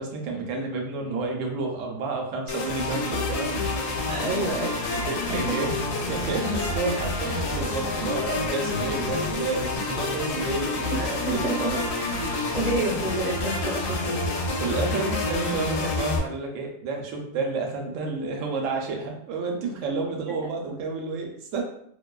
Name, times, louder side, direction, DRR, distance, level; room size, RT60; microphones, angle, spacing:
voice 1, 0.0-3.9 4.9-5.8 6.1-11.4 12.2-12.4 14.6-21.6, right 3 dB, 80° right, 1 dB, 0.9 m, -30 dB
sound 1, 2.5-16.2, left 2 dB, 85° left, 1.0 m, -28 dB
voice 2, 4.1-4.7 5.5-5.6 10.9-11.8 12.5-14.2, right 2 dB, 40° right, -4 dB, 0.8 m, -28 dB
2.5 x 2.2 x 2.3 m, 0.68 s
omnidirectional pair, 1.3 m